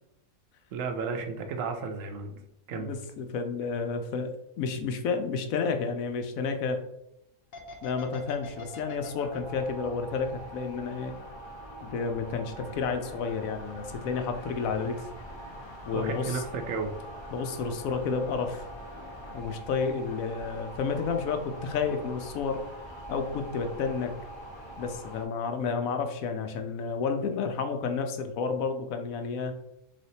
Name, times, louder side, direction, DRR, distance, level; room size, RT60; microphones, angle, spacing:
voice 1, 0.7-2.4 2.7-3.0 15.9-16.9, right 4 dB, 70° right, 6 dB, 0.9 m, -33 dB
voice 2, 2.7-4.3 4.6-6.8 7.8-11.2 11.8-15.0 15.9-16.4 17.3-18.6 19.3-22.6 23.1-24.1 24.8-29.5, left 5 dB, 75° left, 6 dB, 1.0 m, -31 dB
sound 1, 7.5-11.2 11.6-12.5 12.8-12.9, left 3 dB, 50° left, 0.8 m, -45 dB
sound 2, 8.0-25.2, right 1 dB, 30° left, 0.5 m, -44 dB
3.4 x 3.2 x 4.0 m, 0.80 s
omnidirectional pair, 1.5 m